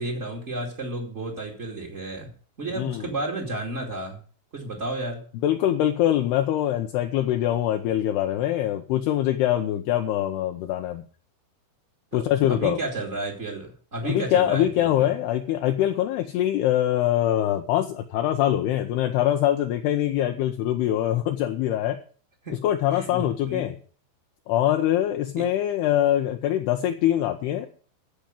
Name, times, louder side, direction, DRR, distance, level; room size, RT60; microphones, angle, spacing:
voice 1, 0.0-2.3 2.6-4.2 4.5-5.2 12.1-12.2 12.5-15.1 22.4-22.5 22.9-23.6 25.4-25.5, right 2 dB, 30° right, -2 dB, 1.3 m, -32 dB
voice 2, 2.8-3.1 5.4-11.0 12.1-12.8 14.0-22.0 22.5-23.8 24.5-27.7, left 12 dB, 80° left, 6 dB, 2.4 m, -23 dB
15.0 x 5.3 x 9.0 m, 0.42 s
omnidirectional pair, 5.5 m